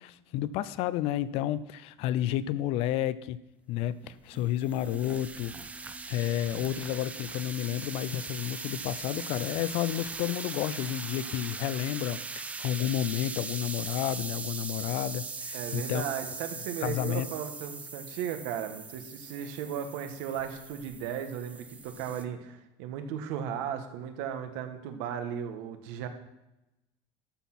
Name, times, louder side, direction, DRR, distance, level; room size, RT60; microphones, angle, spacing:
voice 1, 0.0-3.4 3.7-16.0 16.8-17.3, left 12 dB, 50° left, 17 dB, 0.5 m, -31 dB
sound 1, 4.0-22.2, right 4 dB, 10° right, 0.5 m, -40 dB
voice 2, 15.5-26.1, right 8 dB, 75° right, 7 dB, 1.4 m, -36 dB
12.5 x 6.2 x 5.9 m, 0.91 s
cardioid pair, 175°, 12 cm